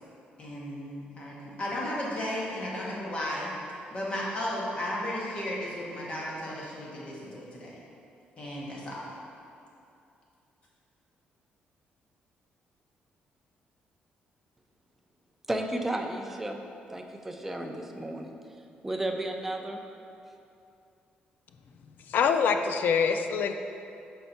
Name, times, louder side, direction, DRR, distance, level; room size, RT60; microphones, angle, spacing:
voice 1, 0.4-3.5 3.9-7.7 8.4-9.1, left 1 dB, 35° left, -5 dB, 1.2 m, -34 dB
voice 2, 15.5-16.6 16.9-18.3 18.8-19.8, right 1 dB, 10° right, 3 dB, 0.4 m, -33 dB
voice 3, 22.1-23.5, left 6 dB, 60° left, 7 dB, 0.4 m, -25 dB
5.6 x 4.2 x 4.3 m, 2.6 s
cardioid pair, 145°, 3 cm